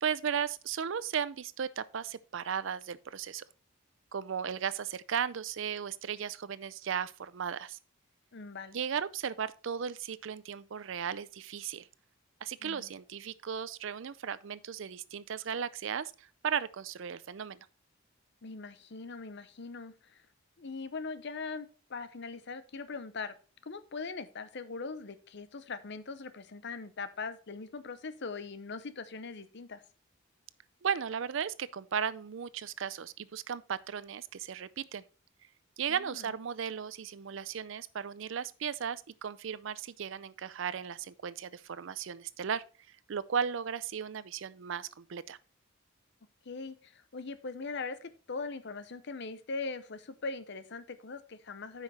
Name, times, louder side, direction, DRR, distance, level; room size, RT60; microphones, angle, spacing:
voice 1, 0.0-3.4 4.1-7.8 8.7-11.9 12.4-17.6 30.8-35.0 35.8-42.6 43.1-45.4, right 7 dB, 65° right, 0.5 m, -36 dB
voice 2, 8.3-8.8 12.6-12.9 18.4-20.2 20.6-23.3 23.6-29.8 35.9-36.3 46.5-51.8, left 4 dB, 55° left, 0.8 m, -41 dB
8.9 x 5.8 x 4.2 m
head